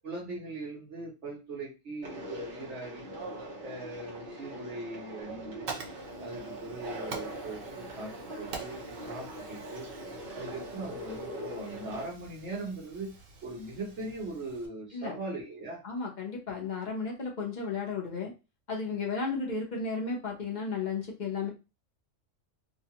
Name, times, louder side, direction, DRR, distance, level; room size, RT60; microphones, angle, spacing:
voice 1, 0.0-3.1 3.6-5.7 6.2-9.9 10.3-13.1 13.4-15.8, right 2 dB, 65° right, -4 dB, 1.2 m, -40 dB
Conversation, 2.0-12.0, right 1 dB, 40° right, 1.0 m, -42 dB
Fire, 5.2-14.7, right 5 dB, 85° right, 1.2 m, -47 dB
voice 2, 15.8-18.3 18.7-21.5, left 4 dB, 40° left, -2 dB, 0.8 m, -34 dB
2.9 x 2.3 x 2.8 m, 0.28 s
omnidirectional pair, 1.3 m